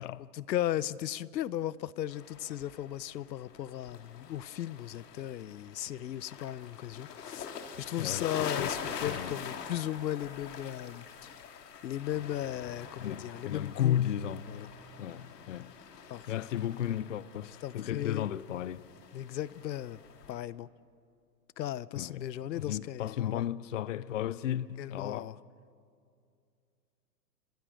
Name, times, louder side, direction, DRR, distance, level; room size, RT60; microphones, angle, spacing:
voice 1, 0.3-14.0 14.5-14.7 16.1-16.2 17.6-18.3 19.1-20.0 20.3-20.7 21.6-23.4 24.8-25.4, left 12 dB, 90° left, 0.9 m, -36 dB
sound 1, 2.1-20.4, left 7 dB, 70° left, 3.0 m, -44 dB
voice 2, 8.6-9.3 13.0-14.5 15.0-15.7 16.3-18.8 22.0-22.2 22.5-25.3, left 11 dB, 50° left, 0.6 m, -34 dB
29.5 x 26.5 x 6.4 m
hypercardioid pair, 180°, 50 cm